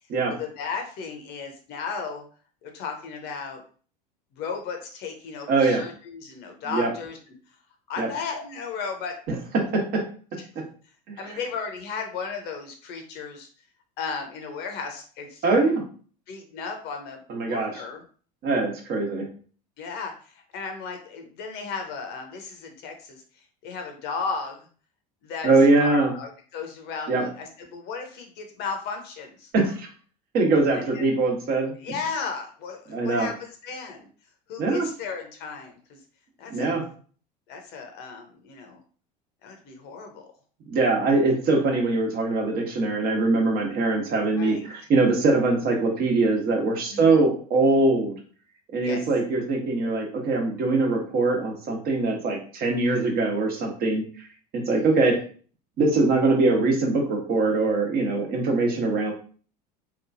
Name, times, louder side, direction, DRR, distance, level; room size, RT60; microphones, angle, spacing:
voice 1, 0.3-2.2 2.6-3.6 4.3-7.2 7.9-9.1 10.5-10.6 11.2-13.5 14.0-15.6 16.3-18.0 19.8-23.2 23.6-24.6 25.2-29.5 30.7-31.0 31.8-34.1 34.5-36.0 36.4-36.7 37.5-38.8 39.4-40.3 44.4-44.7 46.9-47.2 48.8-49.0 52.9-53.0 54.7-55.1, left 5 dB, 55° left, 4 dB, 0.8 m, -35 dB
voice 2, 5.5-5.8 6.7-6.9 8.0-8.1 9.3-10.0 11.2-11.3 15.4-15.8 17.3-17.7 18.4-19.3 25.4-26.1 27.1-27.2 29.5-29.9 30.3-31.7 32.9-33.3 34.6-34.9 36.5-36.8 40.7-48.1 48.7-54.3 54.5-55.2 55.8-59.1, right 3 dB, 50° right, 1 dB, 1.1 m, -22 dB
2.9 x 2.3 x 2.6 m, 0.42 s
hypercardioid pair, 80°, 21 cm